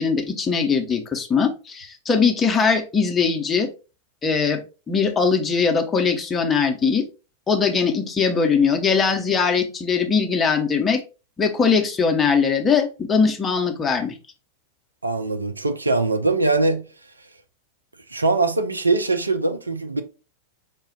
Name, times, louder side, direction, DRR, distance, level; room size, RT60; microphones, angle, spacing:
voice 1, 0.0-3.7 4.2-4.6 4.9-7.0 7.5-11.0 11.4-14.1, left 5 dB, 20° left, 0.9 m, -21 dB
voice 2, 15.0-16.8 18.1-20.0, right 3 dB, 80° right, 0.5 m, -22 dB
5.1 x 2.3 x 3.9 m
figure-of-eight pair, 90°, 0 cm